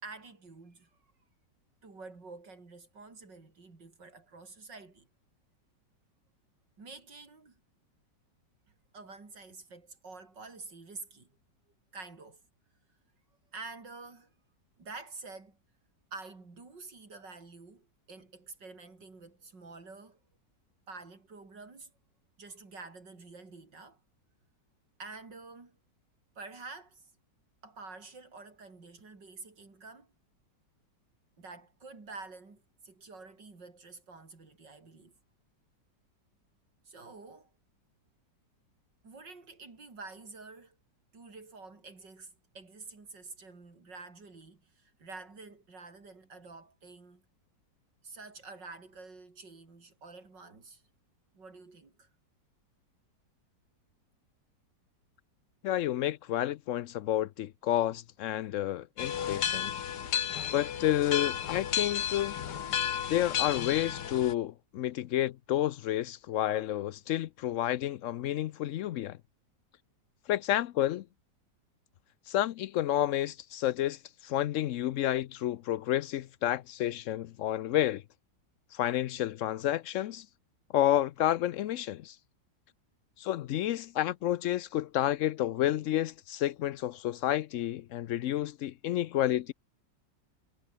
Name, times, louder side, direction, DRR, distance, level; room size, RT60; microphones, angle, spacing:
voice 1, 0.0-0.9 1.8-5.1 6.8-7.6 8.9-11.3 11.9-12.4 13.5-14.3 14.8-15.6 16.1-20.2 20.9-21.9 22.4-24.0 25.0-25.8 26.3-27.1 27.6-30.1 31.4-35.1 36.8-37.5 39.0-40.8 41.1-47.2 48.0-50.8 51.3-52.1, right 3 dB, 75° right, 4.9 m, -48 dB
voice 2, 55.6-59.7 60.5-62.4 63.1-69.2 70.3-71.0 72.3-78.0 78.7-80.3 80.7-82.2 83.2-89.5, left 13 dB, 90° left, 0.6 m, -30 dB
sound 1, 59.0-64.3, left 9 dB, 65° left, 1.8 m, -33 dB
omnidirectional pair, 1.9 m